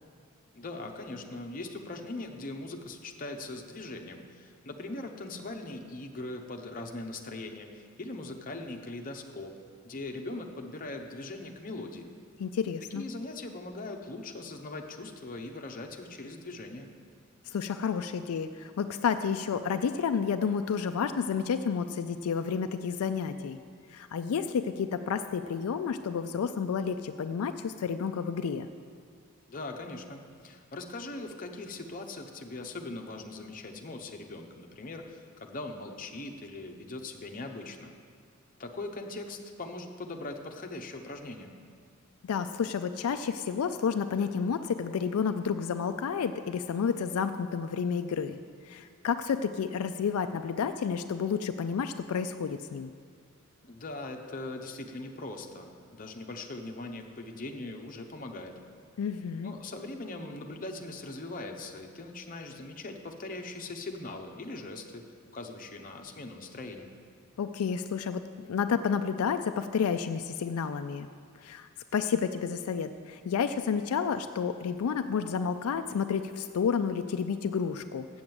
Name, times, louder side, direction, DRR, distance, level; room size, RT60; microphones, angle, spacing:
voice 1, 0.5-9.5 9.8-12.1 12.9-16.9 29.5-37.9 38.6-41.5 53.6-58.6 59.4-65.0 65.3-66.9, left 2 dB, 40° left, 3 dB, 0.8 m, -40 dB
voice 2, 12.4-13.1 17.5-23.6 23.9-28.7 42.2-48.4 48.6-52.9 59.0-59.5 67.4-71.1 71.4-78.2, left 6 dB, 85° left, 9 dB, 0.4 m, -30 dB
7.9 x 7.3 x 7.8 m, 2.1 s
head